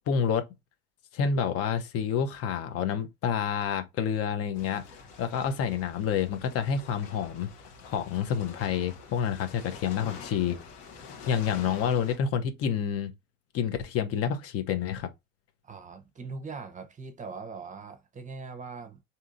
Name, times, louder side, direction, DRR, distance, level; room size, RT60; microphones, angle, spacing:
voice 1, 0.1-0.4 1.1-4.8 5.2-7.5 7.8-10.6 11.0-13.1 13.5-15.1, left 7 dB, 50° left, 0.7 m, -28 dB
sound 1, 4.5-12.2, left 5 dB, 70° left, 1.1 m, -46 dB
voice 2, 15.6-19.0, right 4 dB, 25° right, 0.7 m, -41 dB
3.7 x 2.8 x 2.4 m
hypercardioid pair, 70°, 29 cm